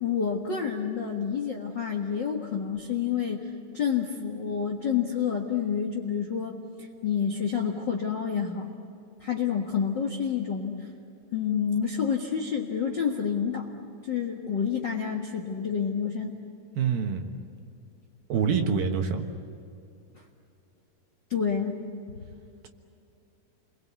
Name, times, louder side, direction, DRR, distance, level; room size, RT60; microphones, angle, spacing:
voice 1, 0.0-8.7 9.2-10.9 11.3-13.7 14.0-16.4 21.3-21.8, left 7 dB, 60° left, 1 dB, 1.1 m, -29 dB
voice 2, 16.8-17.3 18.3-19.2, right 6 dB, 65° right, 4 dB, 3.0 m, -26 dB
29.0 x 22.5 x 8.3 m, 2.6 s
omnidirectional pair, 4.7 m